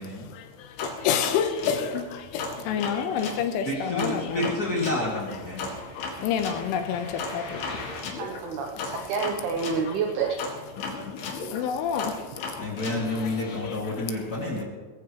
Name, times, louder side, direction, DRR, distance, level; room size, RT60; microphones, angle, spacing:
voice 1, 0.0-4.5 5.3-5.4 5.8-8.0 8.9-9.1 9.9-10.0 10.8-14.1 14.6-14.7, left 8 dB, 80° left, 7 dB, 3.4 m, -30 dB
sound 1, 0.8-3.4 4.0-9.8 10.4-13.6, left 3 dB, 60° left, 3.6 m, -36 dB
voice 2, 3.6-5.7 8.7-8.8 12.6-14.6, left 1 dB, 45° left, -4 dB, 1.2 m, -29 dB
voice 3, 7.7-10.4, right 5 dB, 80° right, 1 dB, 2.3 m, -29 dB
19.5 x 14.5 x 3.2 m, 1.5 s
omnidirectional pair, 5.8 m